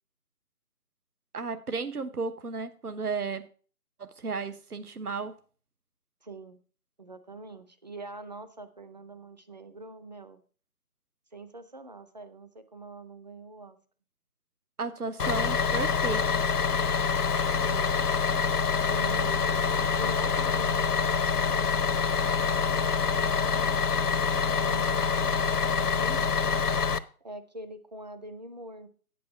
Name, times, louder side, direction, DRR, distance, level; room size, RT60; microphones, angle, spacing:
voice 1, 1.3-3.5 4.0-5.3 14.8-16.2, right 4 dB, 80° right, 1.2 m, -33 dB
voice 2, 6.2-6.6 7.0-10.4 11.3-13.8 17.6-18.0 18.9-21.7 22.4-22.6 23.1-26.4 27.2-28.9, right 2 dB, 30° right, 0.6 m, -44 dB
Bus, 15.2-27.0, left 5 dB, 85° left, 0.9 m, -26 dB
8.5 x 8.1 x 4.5 m
figure-of-eight pair, 155°, 45 cm